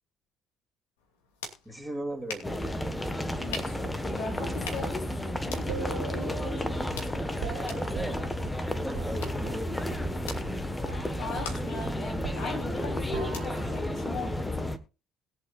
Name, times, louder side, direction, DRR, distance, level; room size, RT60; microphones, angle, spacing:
sound 1, 1.0-14.7, left 4 dB, 75° left, 2.6 m, -46 dB
voice 1, 1.6-2.5 5.7-6.0 7.8-8.3 8.8-9.7, right 1 dB, 10° right, 2 dB, 2.9 m, -37 dB
sound 2, 2.4-14.8, left 1 dB, 10° left, 1.4 m, -32 dB
voice 2, 3.4-5.0 5.5-6.7 11.1-14.3, left 3 dB, 60° left, -1 dB, 7.9 m, -39 dB
sound 3, 5.7-10.1 10.4-10.6 10.9-13.9, right 12 dB, 75° right, 0.6 m, -43 dB
21.0 x 7.7 x 2.5 m, 0.33 s
figure-of-eight pair, 55°, 0 cm